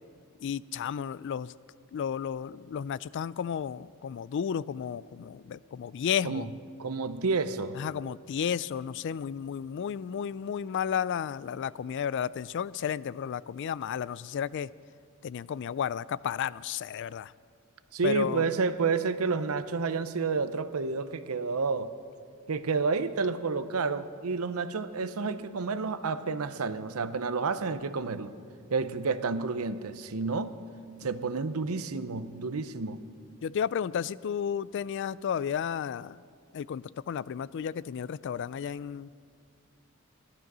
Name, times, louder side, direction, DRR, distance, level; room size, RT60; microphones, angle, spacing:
voice 1, 0.4-1.5 1.9-6.5 7.7-14.7 15.2-17.3 18.0-18.5 33.4-36.2 36.5-39.1, left 8 dB, 55° left, 19 dB, 0.3 m, -33 dB
voice 2, 6.8-7.8 17.9-21.9 22.5-28.3 28.7-30.6 31.0-33.0, right 4 dB, 90° right, 12 dB, 0.7 m, -30 dB
16.5 x 12.0 x 6.1 m, 2.2 s
head